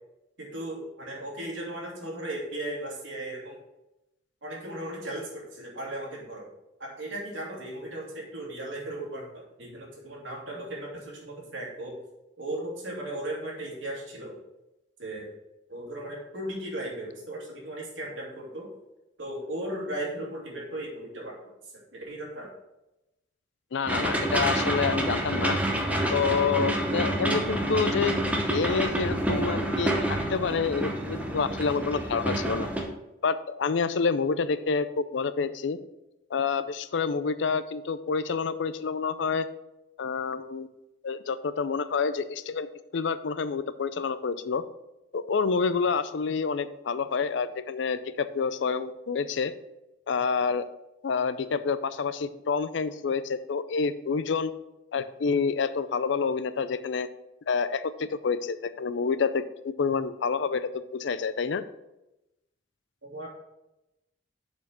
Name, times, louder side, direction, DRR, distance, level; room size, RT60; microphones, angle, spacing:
voice 1, 0.4-3.6 4.4-6.5 6.8-11.9 12.4-14.4 15.0-15.3 15.7-18.7 19.2-21.5 21.9-22.5 63.0-63.3, right 1 dB, 75° right, -3 dB, 2.6 m, -36 dB
voice 2, 23.7-25.6 26.1-28.1 28.5-29.9 30.3-32.7 33.2-35.8 36.3-39.5 40.0-40.7 41.0-44.6 45.1-49.5 50.1-50.6 51.0-54.5 54.9-57.1 57.5-61.6, left 5 dB, 70° left, 14 dB, 0.4 m, -28 dB
sound 1, 23.9-32.8, right 1 dB, 5° right, 0.8 m, -28 dB
7.0 x 4.4 x 6.1 m, 0.93 s
head